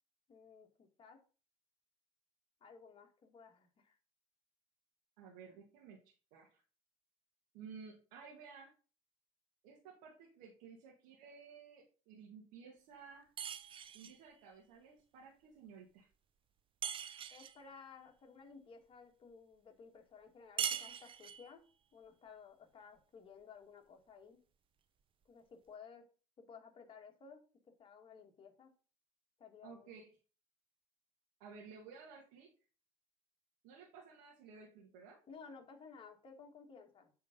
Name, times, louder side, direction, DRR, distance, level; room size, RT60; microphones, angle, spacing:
voice 1, 0.3-1.2 2.6-4.0 17.3-21.6 21.9-24.4 25.3-26.1 26.4-28.7 29.4-29.9 35.3-37.1, left 5 dB, 40° left, 3 dB, 1.9 m, -56 dB
voice 2, 5.2-6.0 6.3-6.6 7.5-8.7 9.6-13.3 13.9-16.1 29.6-30.1 31.4-32.5 33.6-35.2, right 5 dB, 85° right, -2 dB, 1.8 m, -55 dB
sound 1, 13.4-14.2 16.8-17.6 20.6-21.5, right 8 dB, 40° right, 0.6 m, -41 dB
8.4 x 3.8 x 5.2 m, 0.37 s
supercardioid pair, 100°, 14 cm